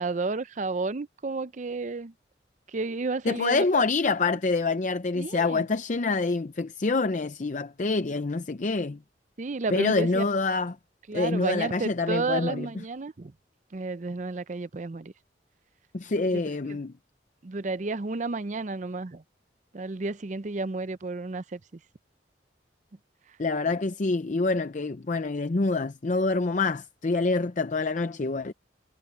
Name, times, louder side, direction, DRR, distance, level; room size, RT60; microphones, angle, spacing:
voice 1, 0.0-2.1 2.7-4.1 5.2-5.6 9.4-10.3 11.1-13.3 13.7-15.1 16.3-16.4 16.7-16.8 17.4-19.2 19.7-21.6, right 3 dB, 45° right, 0.6 m, -32 dB
voice 2, 3.2-9.0 9.7-10.8 11.1-12.7 15.9-16.9 23.4-28.5, left 3 dB, 45° left, 0.6 m, -26 dB
head